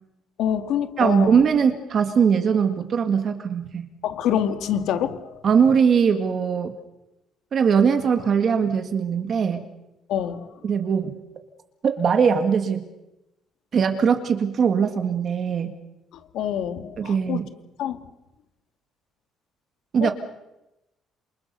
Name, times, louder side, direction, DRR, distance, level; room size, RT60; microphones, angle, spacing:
voice 1, 0.4-1.4 4.0-5.4 10.1-10.5 16.3-17.4 17.8-18.0 20.0-20.1, left 9 dB, 70° left, 9 dB, 2.2 m, -26 dB
voice 2, 1.0-3.9 5.4-6.7 7.5-9.7 10.6-11.1 11.8-12.8 13.7-15.7 17.0-17.5 19.9-20.1, right 6 dB, 35° right, 6 dB, 1.9 m, -21 dB
29.0 x 28.0 x 6.9 m, 0.95 s
cardioid pair, 165°, 0 cm